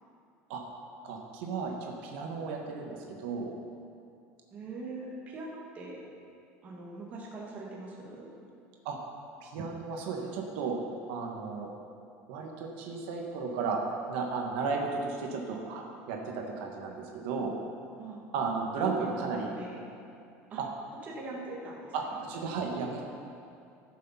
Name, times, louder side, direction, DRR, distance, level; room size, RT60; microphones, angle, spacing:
voice 1, 1.0-3.6 8.8-9.0 9.4-10.8 11.1-11.7 12.3-13.8 14.1-17.6 18.3-19.5 20.6-20.7 21.9-23.0, right 4 dB, 75° right, 1 dB, 1.4 m, -34 dB
voice 2, 4.5-6.0 6.6-8.3 18.0-18.2 18.8-19.8 20.5-20.6 21.0-22.2, right 2 dB, 25° right, -3 dB, 1.8 m, -42 dB
14.5 x 6.5 x 5.6 m, 2.5 s
cardioid pair, 170°, 6 cm